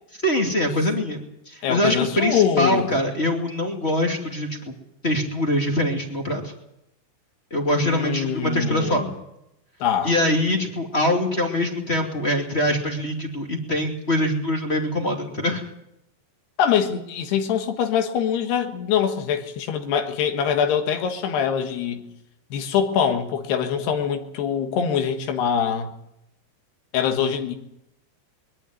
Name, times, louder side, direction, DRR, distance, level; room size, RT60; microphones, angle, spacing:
voice 1, 0.2-1.2 1.5-4.7 5.0-6.5 7.5-9.1 10.0-15.7, left 1 dB, 20° left, 2 dB, 1.9 m, -23 dB
voice 2, 1.6-3.0 7.8-9.1 9.8-10.1 16.6-22.0 22.5-25.9 26.9-27.6, left 8 dB, 80° left, 6 dB, 3.6 m, -23 dB
22.0 x 14.0 x 9.5 m, 0.83 s
omnidirectional pair, 4.6 m